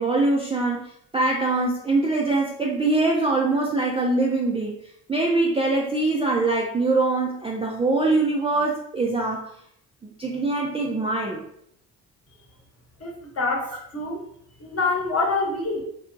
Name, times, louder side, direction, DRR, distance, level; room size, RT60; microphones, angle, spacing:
voice 1, 0.0-4.7 5.1-9.5 10.0-11.4, right 2 dB, 15° right, -2 dB, 0.4 m, -23 dB
voice 2, 13.0-14.2 14.6-15.8, left 3 dB, 30° left, 0 dB, 1.1 m, -26 dB
2.8 x 2.2 x 2.6 m, 0.69 s
hypercardioid pair, 50°, 45 cm